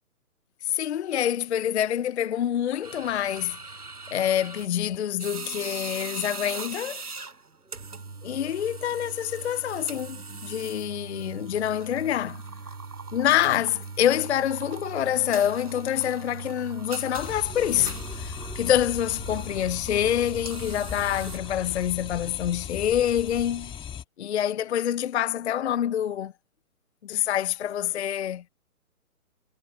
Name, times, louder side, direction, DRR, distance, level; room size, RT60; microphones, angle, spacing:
voice 1, 0.6-3.6 4.1-7.0 8.2-12.4 13.1-23.7 24.2-26.3 27.0-28.4, left 11 dB, 50° left, 0.6 m, -26 dB
sound 1, 2.8-21.9, right 4 dB, 80° right, 6.5 m, -39 dB
sound 2, 17.2-24.0, left 8 dB, 10° left, 2.3 m, -38 dB
figure-of-eight pair, 135°, 45 cm